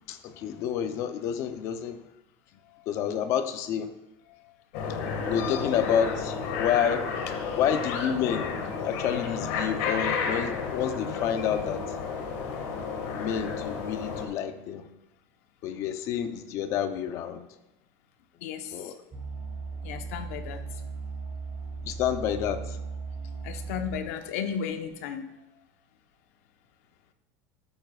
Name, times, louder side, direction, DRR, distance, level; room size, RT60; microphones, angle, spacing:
voice 1, 0.1-2.0 2.9-3.9 5.3-7.1 7.6-8.5 8.8-11.8 13.1-14.9 15.6-17.5 18.7-19.0 21.8-22.8, left 8 dB, 40° left, 0.7 m, -29 dB
sound 1, 4.7-14.3, left 5 dB, 65° left, 1.9 m, -31 dB
voice 2, 18.4-18.9 19.8-20.6 23.4-25.3, left 7 dB, 90° left, 1.0 m, -34 dB
sound 2, 19.1-24.2 24.9-25.0, right 4 dB, 15° right, 2.0 m, -37 dB
13.0 x 9.1 x 2.4 m
cardioid pair, 170°, 8 cm